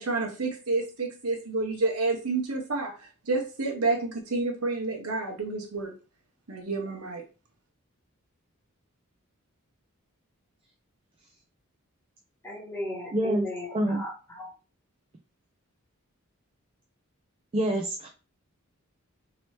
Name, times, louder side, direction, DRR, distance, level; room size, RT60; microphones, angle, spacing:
voice 1, 0.0-5.9 6.5-7.2, right 3 dB, 85° right, 2 dB, 1.0 m, -29 dB
voice 2, 12.4-14.5, left 1 dB, 10° left, -3 dB, 1.1 m, -36 dB
voice 3, 13.1-13.5 13.7-14.0 17.5-18.1, right 1 dB, 25° right, 2 dB, 0.4 m, -26 dB
3.0 x 2.7 x 3.2 m, 0.33 s
head